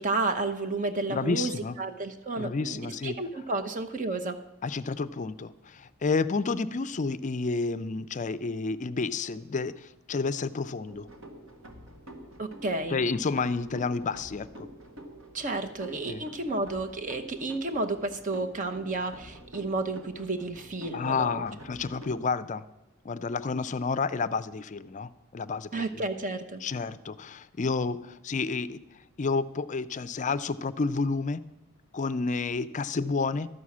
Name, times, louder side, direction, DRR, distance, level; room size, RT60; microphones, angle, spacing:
voice 1, 0.0-4.4 12.4-13.1 15.3-21.5 25.7-26.6, right 3 dB, 40° right, 8 dB, 0.9 m, -31 dB
voice 2, 1.1-1.8 2.4-3.2 4.6-11.1 12.9-14.7 16.0-16.2 20.9-22.6 23.0-25.8 26.6-28.8 29.2-31.4 31.9-33.5, left 4 dB, 35° left, 14 dB, 0.4 m, -30 dB
sound 1, 10.9-22.2, right 1 dB, 70° right, 1.6 m, -48 dB
12.5 x 6.3 x 8.5 m, 0.97 s
head